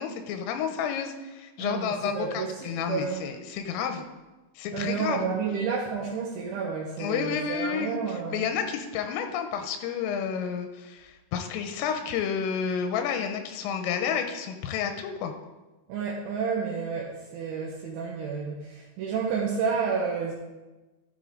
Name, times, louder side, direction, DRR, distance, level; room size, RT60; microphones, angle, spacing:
voice 1, 0.0-4.0 4.6-5.2 7.0-15.3, left 7 dB, 90° left, 6 dB, 3.3 m, -30 dB
voice 2, 1.6-3.2 4.7-8.4 15.9-20.3, right 5 dB, 75° right, -3 dB, 3.2 m, -30 dB
13.5 x 7.5 x 3.8 m, 1.1 s
omnidirectional pair, 5.9 m